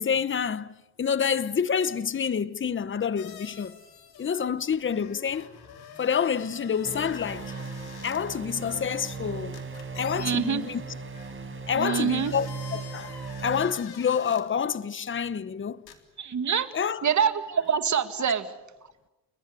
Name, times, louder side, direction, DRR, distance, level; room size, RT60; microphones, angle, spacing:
voice 1, 0.0-3.8 4.2-5.5 6.0-7.5 8.0-9.6 10.0-10.8 11.7-13.1 13.4-15.8 16.7-17.1, left 7 dB, 30° left, 1.0 m, -28 dB
sound 1, 3.2-4.4 4.7-8.2 9.5-10.4 11.1-11.3 12.0-14.4 15.9-16.0, left 7 dB, 80° left, 3.6 m, -47 dB
sound 2, 6.8-13.7, right 4 dB, 35° right, 4.4 m, -38 dB
voice 2, 10.2-10.6 11.8-12.3 16.2-16.7 17.0-18.5, right 7 dB, 50° right, 2.0 m, -25 dB
30.0 x 20.5 x 8.6 m
cardioid pair, 115°, 37 cm